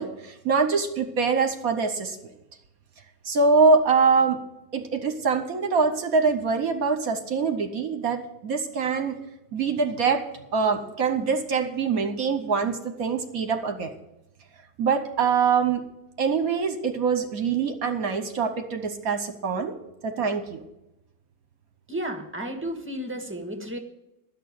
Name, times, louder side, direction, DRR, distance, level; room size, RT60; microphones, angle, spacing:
voice 1, 0.0-2.2 3.2-4.4 4.7-9.2 9.5-10.2 10.5-13.9 14.8-15.8 16.2-19.7 20.0-20.6, right 5 dB, 60° right, 7 dB, 1.3 m, -24 dB
voice 2, 21.9-23.8, right 1 dB, 10° right, 2 dB, 1.4 m, -32 dB
11.5 x 6.7 x 9.3 m, 0.89 s
omnidirectional pair, 1.8 m